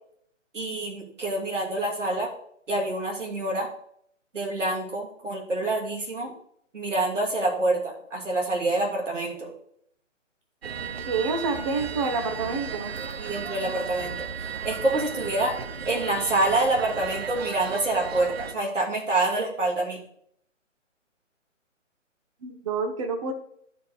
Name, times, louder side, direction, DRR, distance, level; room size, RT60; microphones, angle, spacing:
voice 1, 0.5-2.3 2.7-3.7 4.3-6.3 6.7-9.5 13.2-14.2 14.6-15.5 15.9-20.0, right 2 dB, 70° right, -2 dB, 3.0 m, -26 dB
sound 1, 10.6-18.5, right 6 dB, 55° right, 0.7 m, -35 dB
voice 2, 11.1-13.0 22.4-23.3, right 4 dB, 25° right, 6 dB, 0.9 m, -28 dB
13.0 x 5.0 x 3.2 m, 0.69 s
figure-of-eight pair, 140°, 38 cm